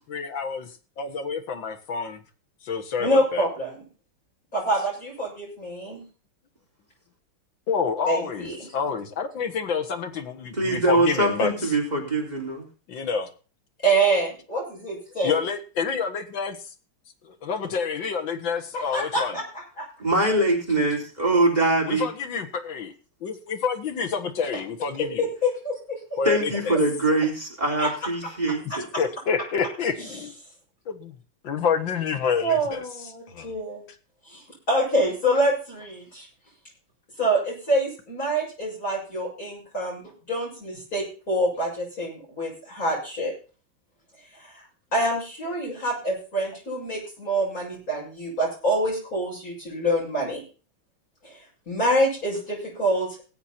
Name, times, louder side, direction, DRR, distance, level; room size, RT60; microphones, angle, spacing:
voice 1, 0.1-2.2 2.6-3.5 7.7-11.5 12.9-13.3 15.2-16.6 17.2-19.4 21.9-22.9 23.2-25.3 26.2-26.8 29.0-30.3 30.9-31.2 31.4-32.8 33.3-33.5, left 6 dB, 65° left, 8 dB, 2.2 m, -28 dB
voice 2, 3.0-3.8 4.5-6.0 8.1-8.7 13.8-15.4 18.9-19.4 19.8-19.9 25.0-26.2 27.8-27.9 28.7-28.8 32.4-33.8 34.3-36.3 37.2-43.3 44.4-44.6 44.9-50.4 51.2-51.4 51.7-53.1, right 1 dB, 40° left, -5 dB, 7.4 m, -26 dB
voice 3, 10.5-12.7 20.0-22.1 26.3-28.9, right 2 dB, 20° right, -1 dB, 3.8 m, -23 dB
19.0 x 8.0 x 4.4 m, 0.36 s
omnidirectional pair, 2.2 m